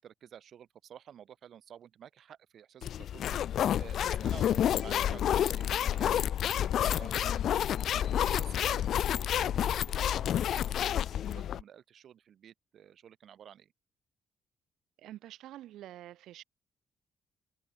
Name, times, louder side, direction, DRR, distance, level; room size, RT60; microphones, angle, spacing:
voice 1, 0.0-13.7, right 9 dB, 55° right, 7.3 m, -52 dB
sound 1, 2.8-11.6, left 10 dB, 65° left, 1.7 m, -29 dB
voice 2, 15.0-16.4, right 14 dB, 90° right, 4.2 m, -47 dB
cardioid pair, 140°, 0 cm